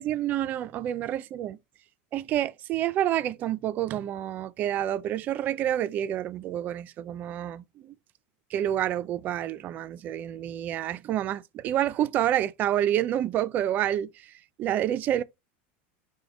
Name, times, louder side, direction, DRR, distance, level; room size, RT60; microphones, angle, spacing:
voice 1, 0.0-1.6 2.1-7.9 8.5-14.1 14.6-15.2, right 11 dB, 30° right, 0.3 m, -28 dB
5.1 x 2.1 x 4.6 m
supercardioid pair, 165°, 6 cm